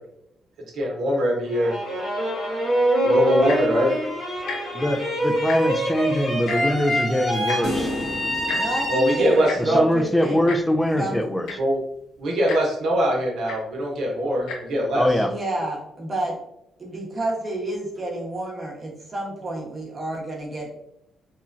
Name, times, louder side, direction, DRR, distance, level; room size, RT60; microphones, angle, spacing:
voice 1, 0.7-1.7 3.0-3.9 8.9-9.9 11.6-11.8 12.2-15.1, equal, 75° right, -2 dB, 0.8 m, -22 dB
sound 1, 1.4-9.7, equal, 55° left, 1.3 m, -25 dB
Tick-tock, 3.4-3.7 4.4-4.6 4.9-5.0 5.3-5.8 6.5-6.6 7.5-7.6 8.5-8.6 9.5-9.6 10.5-10.6 11.2-11.3 11.4-11.8 12.5-12.6 13.5-13.6 14.4-14.6 15.3-15.4, left 5 dB, 85° left, 0.5 m, -32 dB
voice 2, 4.7-7.9 9.6-11.5 14.9-15.4, left 1 dB, 10° left, 8 dB, 0.3 m, -23 dB
sound 2, 7.6-10.0, left 1 dB, 70° left, 1.1 m, -31 dB
voice 3, 8.5-10.5 10.8-11.2 15.3-16.4 16.8-20.7, right 2 dB, 30° right, -2 dB, 0.9 m, -30 dB
3.0 x 2.2 x 2.4 m, 0.76 s
cardioid pair, 90°, 0 cm